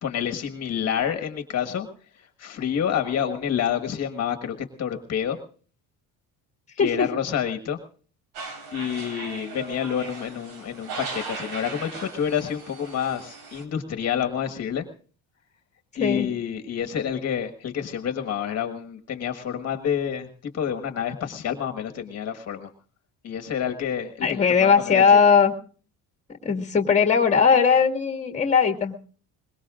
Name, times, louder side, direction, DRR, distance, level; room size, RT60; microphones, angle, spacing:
voice 1, 0.0-1.9 2.1-5.4 6.8-7.8 8.7-14.8 16.0-22.7 23.2-25.2, left 8 dB, 45° left, 5 dB, 1.6 m, -28 dB
sound 1, 8.3-13.6, right 4 dB, 85° right, 4.2 m, -38 dB
voice 2, 24.2-25.5 26.4-28.9, left 6 dB, 20° left, 5 dB, 2.0 m, -19 dB
23.0 x 21.0 x 2.5 m, 0.41 s
cardioid pair, 155°, 37 cm